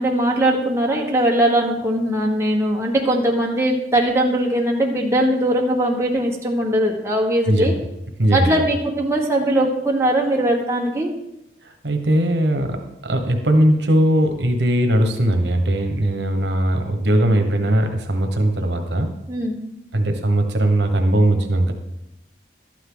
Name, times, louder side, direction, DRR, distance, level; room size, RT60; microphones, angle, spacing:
voice 1, 0.0-7.7 8.3-11.1 19.3-19.6, right 1 dB, 15° right, -1 dB, 1.4 m, -20 dB
voice 2, 7.5-7.8 8.2-8.6 11.6-19.1 19.9-21.7, right 1 dB, 75° right, 5 dB, 1.2 m, -19 dB
12.0 x 9.1 x 3.9 m, 0.87 s
head